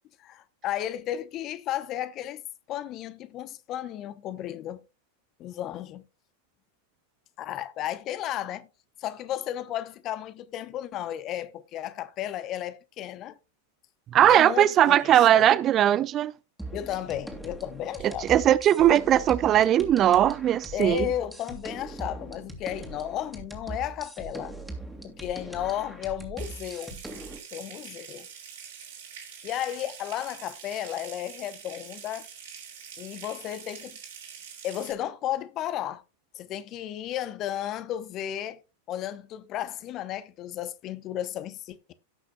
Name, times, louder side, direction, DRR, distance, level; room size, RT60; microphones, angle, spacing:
voice 1, 0.2-2.4 2.7-4.8 5.4-6.0 7.4-8.7 9.0-13.4 14.3-15.5 16.7-18.3 20.7-24.5 25.0-27.0 27.5-28.3 29.4-32.3 33.0-34.0 34.6-36.0 36.3-38.6 38.9-41.9, left 12 dB, 35° left, 0.9 m, -33 dB
voice 2, 14.1-16.3 18.0-21.1, right 11 dB, 30° right, 0.4 m, -20 dB
sound 1, 16.6-27.4, right 2 dB, ahead, 2.4 m, -40 dB
Water tap faucet / Sink (filling or washing) / Trickle dribble, 26.4-34.9, right 7 dB, 60° right, 3.3 m, -45 dB
17.5 x 6.0 x 2.3 m
figure-of-eight pair, 90°, 0 cm